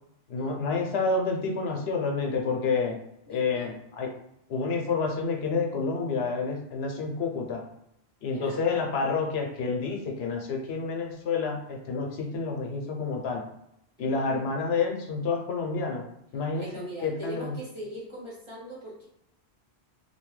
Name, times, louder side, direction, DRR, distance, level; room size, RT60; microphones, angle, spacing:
voice 1, 0.3-3.0 3.3-4.1 4.5-7.6 8.2-13.4 14.0-16.1 16.3-17.6, left 4 dB, 75° left, 1 dB, 0.8 m, -29 dB
voice 2, 3.3-3.7 8.2-8.7 14.0-14.5 16.5-19.1, right 1 dB, 30° right, -5 dB, 0.7 m, -41 dB
2.7 x 2.1 x 3.1 m, 0.79 s
omnidirectional pair, 1.1 m